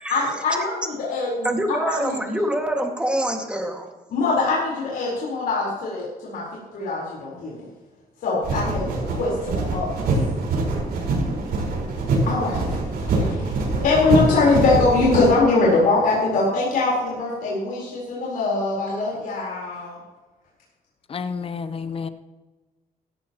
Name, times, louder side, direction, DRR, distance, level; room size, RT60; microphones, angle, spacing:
voice 1, 0.1-2.2 4.1-6.5 6.7-7.6 8.2-10.1 12.1-20.0, left 3 dB, 70° left, 4.2 m, -23 dB
voice 2, 1.4-3.9, right 1 dB, 5° right, 2.0 m, -25 dB
sound 1, 8.4-15.4, right 3 dB, 85° right, 4.8 m, -24 dB
voice 3, 21.1-22.1, left 5 dB, 35° left, 0.9 m, -30 dB
16.5 x 13.0 x 3.0 m
cardioid pair, 125°, 15 cm